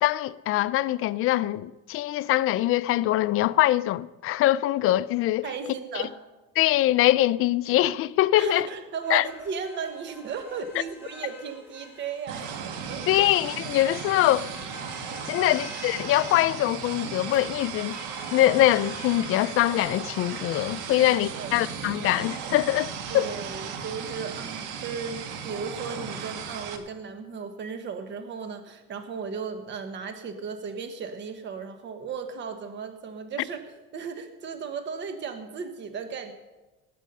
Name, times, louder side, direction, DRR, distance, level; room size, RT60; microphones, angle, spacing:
voice 1, 0.0-5.5 5.9-6.0 6.6-8.7 9.1-9.2 13.1-14.5 15.3-18.0 18.3-23.3, left 15 dB, 50° left, 0.5 m, -23 dB
voice 2, 5.4-6.1 8.3-12.4 12.9-13.3 15.4-15.7 21.0-21.7 23.1-36.3, right 5 dB, 40° right, 1.3 m, -36 dB
sound 1, 9.0-24.2, left 1 dB, 5° right, 2.7 m, -47 dB
sound 2, 12.3-26.8, right 7 dB, 90° right, 1.6 m, -36 dB
19.0 x 8.4 x 5.5 m
cardioid pair, 140°, 29 cm